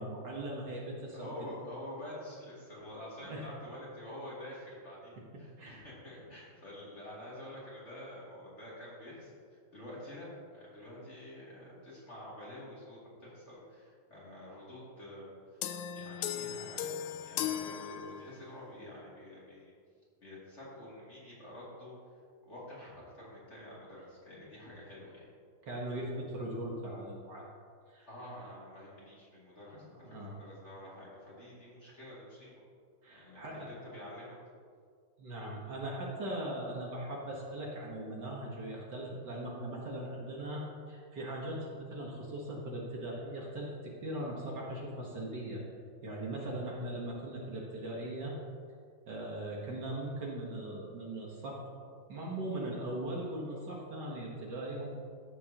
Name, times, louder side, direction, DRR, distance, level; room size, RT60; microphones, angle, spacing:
voice 1, 0.0-1.3 3.3-3.4 5.3-5.9 25.7-27.4 27.9-28.1 30.0-30.4 33.0-33.7 35.2-45.6 46.0-48.4 49.1-54.9, right 1 dB, 55° right, -3 dB, 1.9 m, -39 dB
voice 2, 1.1-15.4 15.9-19.7 20.2-21.9 22.4-25.3 28.1-32.6 33.1-34.3 49.0-49.1, left 1 dB, 30° left, -8 dB, 3.0 m, -48 dB
sound 1, 15.6-18.6, left 9 dB, 80° left, 1.4 m, -37 dB
14.5 x 7.3 x 2.9 m, 2.1 s
omnidirectional pair, 2.3 m